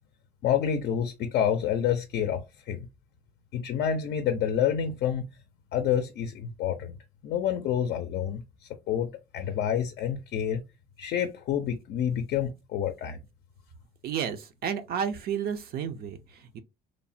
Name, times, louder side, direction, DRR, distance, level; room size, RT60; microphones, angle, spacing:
voice 1, 0.4-2.9 3.5-5.3 5.7-6.9 7.2-8.4 8.9-10.6 11.0-13.2, left 9 dB, 65° left, 0.4 m, -28 dB
voice 2, 14.0-16.6, right 8 dB, 60° right, 0.5 m, -32 dB
3.1 x 2.0 x 2.5 m
supercardioid pair, 75°, 18 cm